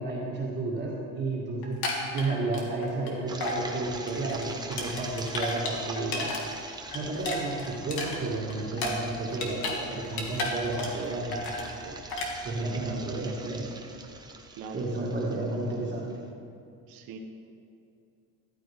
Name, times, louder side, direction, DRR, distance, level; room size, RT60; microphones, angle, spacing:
voice 1, 0.0-1.8 2.1-6.4 6.9-11.5 11.8-12.0 12.4-13.7 14.7-16.1, right 2 dB, 30° right, -5 dB, 2.0 m, -32 dB
sound 1, 1.6-3.1 3.4-3.6 3.9-6.4 6.7-9.8 10.0-11.1 11.3-11.7 12.1-12.3, left 2 dB, 75° left, 2.5 m, -33 dB
sound 2, 3.3-16.1, right 3 dB, 10° right, 0.7 m, -43 dB
voice 2, 12.7-13.2 14.5-14.9 16.9-17.2, right 5 dB, 65° right, 2 dB, 1.2 m, -41 dB
14.0 x 13.5 x 3.6 m, 2.6 s
cardioid pair, 150°, 36 cm